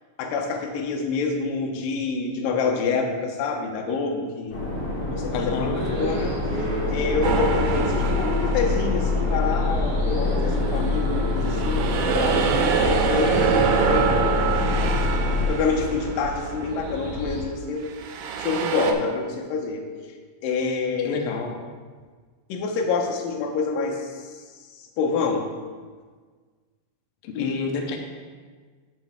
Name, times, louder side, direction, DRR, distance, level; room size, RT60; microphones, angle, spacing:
voice 1, 0.2-4.6 5.0-5.7 6.0-14.3 15.5-17.9 18.4-19.9 20.4-21.3 22.5-24.4 24.7-25.5, left 4 dB, 85° left, 3 dB, 2.5 m, -27 dB
sound 1, 4.5-15.5, left 3 dB, 50° left, 1.5 m, -26 dB
voice 2, 5.3-5.8 21.0-21.5 27.2-28.0, left 5 dB, 70° left, 1 dB, 1.8 m, -28 dB
sound 2, 5.7-17.4, right 1 dB, 65° right, 3.1 m, -32 dB
sound 3, 7.2-9.7 10.3-16.7 17.9-18.9, right 6 dB, 80° right, 1.8 m, -26 dB
9.3 x 6.8 x 3.5 m, 1.5 s
omnidirectional pair, 3.8 m